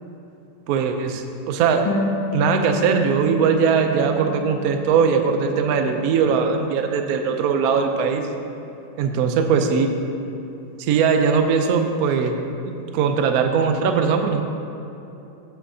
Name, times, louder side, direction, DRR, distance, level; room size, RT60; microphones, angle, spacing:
voice 1, 0.7-1.8 2.3-8.2 9.0-9.9 10.8-12.4 12.6-14.4, right 6 dB, 65° right, 5 dB, 0.9 m, -20 dB
Harp, 1.8-5.2 5.6-6.7, left 2 dB, 80° left, 1.7 m, -30 dB
14.5 x 5.8 x 2.8 m, 2.9 s
omnidirectional pair, 2.1 m